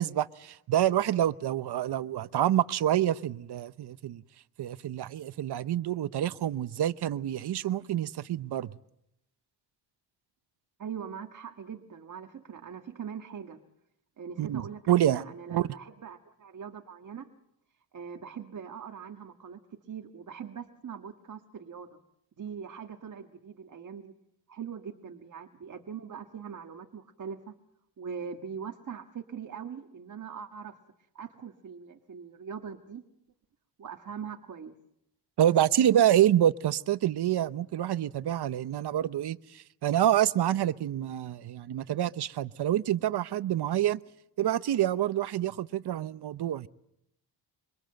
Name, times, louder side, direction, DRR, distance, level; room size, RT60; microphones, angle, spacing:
voice 1, 0.0-4.2 4.6-8.7 14.4-15.7 35.4-44.0 44.4-46.7, right 11 dB, 55° right, 0.9 m, -27 dB
voice 2, 10.8-13.6 14.2-17.3 17.9-22.0 22.4-24.1 24.5-27.5 28.0-30.8 31.1-33.0 33.8-34.8, right 7 dB, 40° right, 1.7 m, -42 dB
26.0 x 24.5 x 7.8 m
cardioid pair, 125°, 46 cm